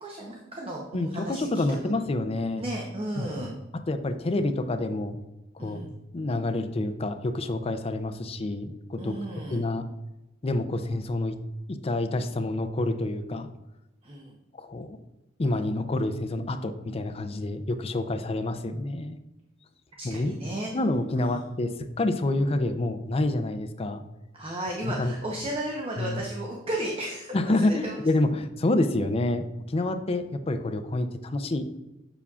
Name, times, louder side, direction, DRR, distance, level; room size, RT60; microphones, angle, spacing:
voice 1, 0.0-1.6 2.6-3.5 5.6-5.9 9.0-9.6 14.0-14.4 20.0-20.7 21.2-21.4 24.3-28.0, right 1 dB, 30° right, -1 dB, 0.8 m, -34 dB
voice 2, 0.9-2.7 3.2-3.5 3.9-5.2 5.5-5.9 6.1-9.2 9.5-9.9 10.4-11.4 11.7-13.5 14.5-15.0 15.4-19.2 20.0-20.3 20.7-24.0 24.8-25.1 26.0-26.2 27.3-31.7, left 2 dB, 30° left, 8 dB, 0.5 m, -28 dB
7.1 x 6.9 x 2.4 m, 0.99 s
head